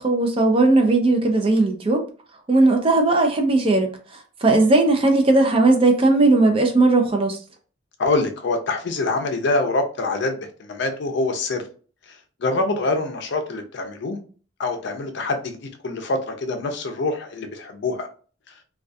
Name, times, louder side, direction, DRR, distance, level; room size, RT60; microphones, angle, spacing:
voice 1, 0.0-2.1 2.5-3.9 4.4-7.4, right 2 dB, 30° right, 0.4 m, -17 dB
voice 2, 8.0-11.6 12.4-14.2 14.6-15.6 15.8-18.1, left 2 dB, 60° left, 0.5 m, -25 dB
2.3 x 2.2 x 2.5 m
head